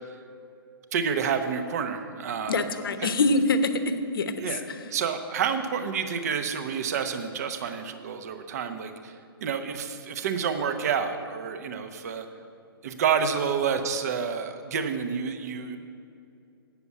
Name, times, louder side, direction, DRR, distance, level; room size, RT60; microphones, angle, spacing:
voice 1, 0.9-2.6 3.0-3.1 4.4-4.6 4.9-12.3 12.8-15.8, right 6 dB, 40° right, 8 dB, 0.8 m, -29 dB
voice 2, 2.5-3.7 4.1-4.3, left 3 dB, 65° left, 9 dB, 0.9 m, -24 dB
8.6 x 6.9 x 8.1 m, 2.6 s
hypercardioid pair, 155°, 13 cm